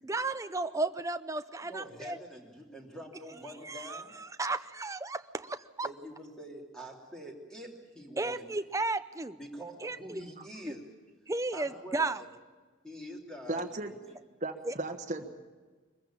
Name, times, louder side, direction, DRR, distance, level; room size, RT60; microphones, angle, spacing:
voice 1, 0.0-2.2 3.6-5.9 8.2-9.4 9.8-10.2 10.7-10.8 11.3-12.2 14.7-14.8, right 3 dB, 15° right, 11 dB, 0.6 m, -34 dB
voice 2, 1.6-4.1 5.8-8.4 9.4-10.8 11.5-12.3 12.8-13.6 14.0-14.2, equal, 5° left, 0 dB, 3.0 m, -45 dB
voice 3, 13.5-13.9 14.4-15.3, right 2 dB, 35° right, 5 dB, 1.4 m, -35 dB
23.5 x 15.0 x 8.8 m, 1.3 s
head